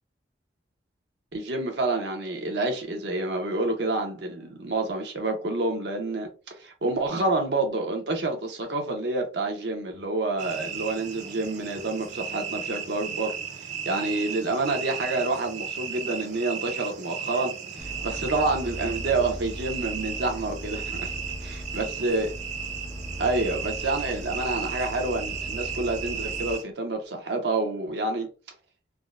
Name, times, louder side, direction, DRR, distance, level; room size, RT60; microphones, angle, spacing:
voice 1, 1.3-13.4 13.9-21.1 21.4-22.3 23.2-28.3, right 2 dB, 75° right, 0.8 m, -28 dB
sound 1, 10.4-26.6, right 7 dB, 40° right, 0.4 m, -35 dB
sound 2, 17.8-26.5, equal, 15° left, 0.5 m, -38 dB
3.5 x 2.1 x 2.4 m
head